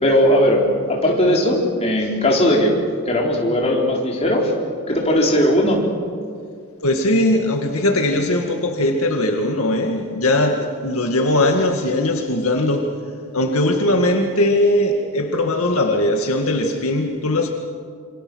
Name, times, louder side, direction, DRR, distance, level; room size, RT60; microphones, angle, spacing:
voice 1, 0.0-2.7 3.0-4.5 4.9-5.8, left 1 dB, 30° left, -2 dB, 4.1 m, -18 dB
voice 2, 6.8-13.0 13.3-17.5, left 1 dB, 75° left, 3 dB, 2.0 m, -19 dB
27.0 x 25.5 x 6.4 m, 2.1 s
head